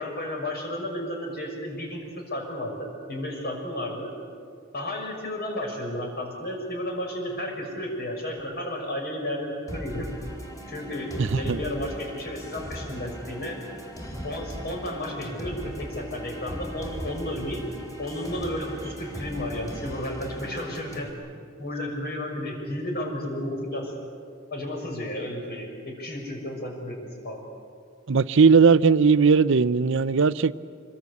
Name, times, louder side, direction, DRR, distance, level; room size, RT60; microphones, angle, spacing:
voice 1, 0.0-2.0 2.3-4.1 4.7-10.1 10.7-13.6 14.2-17.6 18.0-21.1 21.6-23.9 24.5-27.0 27.2-27.5, left 1 dB, 50° left, 6.1 m, -32 dB
sound 1, 9.7-21.1, equal, 20° left, 4.1 m, -38 dB
voice 2, 11.2-11.6 28.1-30.5, right 5 dB, 65° right, 0.6 m, -18 dB
27.0 x 22.0 x 8.3 m
head